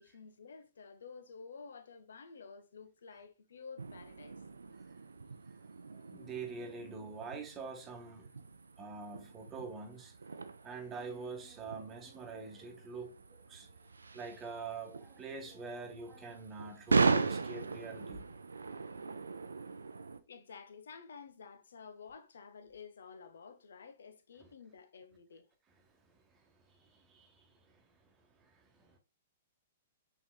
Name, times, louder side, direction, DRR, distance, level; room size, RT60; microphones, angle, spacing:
voice 1, 0.0-4.4 20.3-25.5, left 5 dB, 70° left, 0.6 m, -52 dB
sound 1, 3.8-20.2, right 4 dB, 80° right, 0.4 m, -38 dB
voice 2, 6.1-8.3 8.8-10.1 10.6-13.7 14.1-18.2 24.4-24.5 25.9-29.0, right 4 dB, 20° right, 1.2 m, -46 dB
5.9 x 3.6 x 2.2 m
figure-of-eight pair, 115°, 0 cm